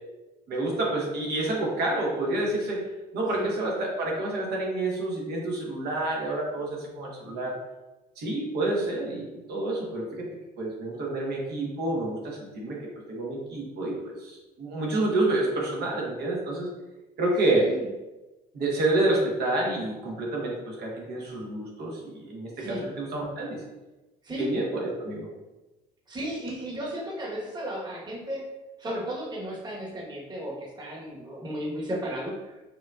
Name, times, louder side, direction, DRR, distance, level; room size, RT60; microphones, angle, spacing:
voice 1, 0.5-2.8 3.1-7.6 8.2-10.3 10.6-12.8 13.1-16.7 17.2-17.7 18.5-23.6 24.4-25.3, right 2 dB, 70° right, -2 dB, 1.2 m, -28 dB
voice 2, 17.5-17.9 22.6-22.8 24.2-24.5 26.1-28.4 28.8-32.6, equal, 25° right, -4 dB, 1.2 m, -34 dB
5.0 x 2.7 x 2.4 m, 1.1 s
cardioid pair, 110°, 17 cm